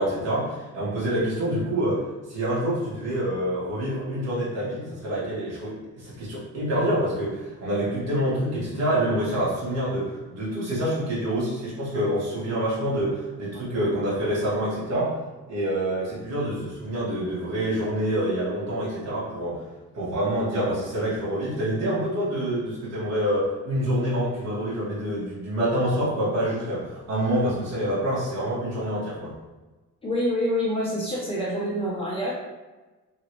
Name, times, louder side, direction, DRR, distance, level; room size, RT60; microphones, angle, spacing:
voice 1, 0.0-2.0 2.3-15.2 15.5-19.6 19.9-29.3, right 1 dB, 55° right, -8 dB, 1.2 m, -26 dB
voice 2, 30.0-32.3, equal, 15° left, -7 dB, 1.2 m, -26 dB
2.9 x 2.9 x 3.0 m, 1.2 s
cardioid pair, 155°, 31 cm